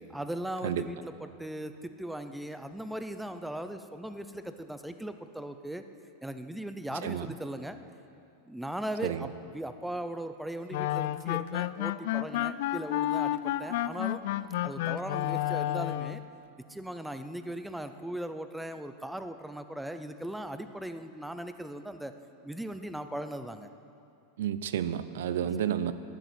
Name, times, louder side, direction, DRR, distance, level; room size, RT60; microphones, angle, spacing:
voice 1, 0.1-5.8 6.2-7.8 8.5-14.2 14.6-16.2 16.7-22.2 22.4-23.7 25.4-25.7, right 1 dB, ahead, 9 dB, 0.5 m, -38 dB
sound 1, 10.7-16.3, left 14 dB, 60° left, 0.4 m, -31 dB
voice 2, 24.4-25.9, right 9 dB, 75° right, 13 dB, 0.6 m, -31 dB
11.5 x 11.0 x 8.0 m, 2.5 s
supercardioid pair, 165°, 0 cm